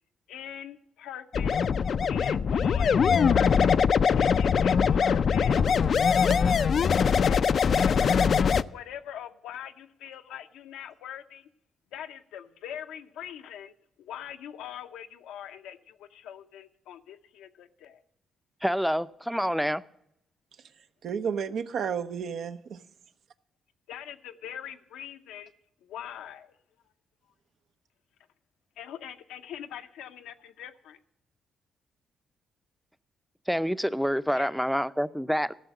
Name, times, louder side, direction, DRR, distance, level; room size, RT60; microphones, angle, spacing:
voice 1, 0.3-1.6 2.1-3.0 3.3-3.8 4.2-5.6 7.2-8.3 8.6-11.5 11.9-18.0 23.9-25.5 25.8-26.6 28.8-31.0 34.3-34.5, left 10 dB, 85° left, 0.7 m, -42 dB
sound 1, 1.3-8.6, left 6 dB, 55° left, 0.4 m, -22 dB
voice 2, 6.3-6.7 21.0-22.8, right 7 dB, 70° right, 0.7 m, -32 dB
voice 3, 18.6-19.8 33.5-35.5, equal, ahead, 0.5 m, -27 dB
14.0 x 6.3 x 7.9 m
supercardioid pair, 60°, 0 cm